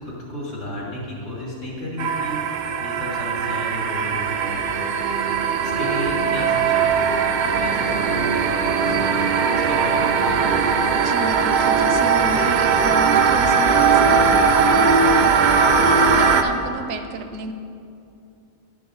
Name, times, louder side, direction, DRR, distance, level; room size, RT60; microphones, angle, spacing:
voice 1, 0.0-4.8 5.6-9.2 9.5-10.5, left 1 dB, 85° left, -4 dB, 2.3 m, -33 dB
sound 1, 2.0-16.4, right 5 dB, 65° right, 0.5 m, -19 dB
voice 2, 10.9-15.4 16.0-17.5, right 4 dB, 80° right, 8 dB, 0.9 m, -31 dB
11.0 x 5.4 x 3.9 m, 2.5 s
omnidirectional pair, 1.3 m